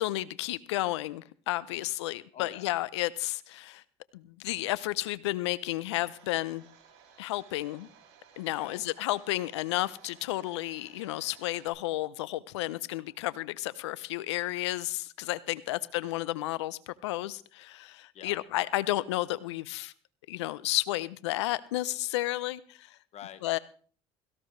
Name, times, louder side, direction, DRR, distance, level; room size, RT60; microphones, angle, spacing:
voice 1, 0.0-3.8 4.1-6.6 7.2-7.9 8.4-19.9 20.3-23.0 23.4-23.6, left 17 dB, 85° left, 19 dB, 0.6 m, -32 dB
voice 2, 2.3-2.7 8.5-8.8 13.1-13.2 18.1-18.4 23.1-23.4, left 10 dB, 50° left, 14 dB, 1.1 m, -46 dB
Domestic sounds home sounds, 6.0-11.7, right 7 dB, 80° right, 3.6 m, -58 dB
17.0 x 15.0 x 3.2 m, 0.43 s
hypercardioid pair, 70°, 14 cm